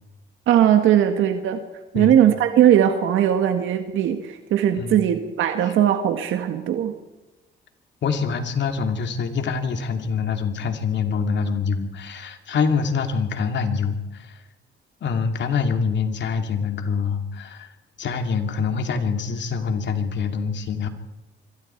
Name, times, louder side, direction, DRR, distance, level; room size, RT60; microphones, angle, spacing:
voice 1, 0.5-1.6 1.9-6.9, right 10 dB, 80° right, 6 dB, 1.7 m, -19 dB
voice 2, 8.0-14.4 15.0-17.7 18.0-20.9, left 5 dB, 65° left, 5 dB, 2.8 m, -25 dB
26.0 x 23.0 x 4.6 m, 1.1 s
cardioid pair, 90°, 20 cm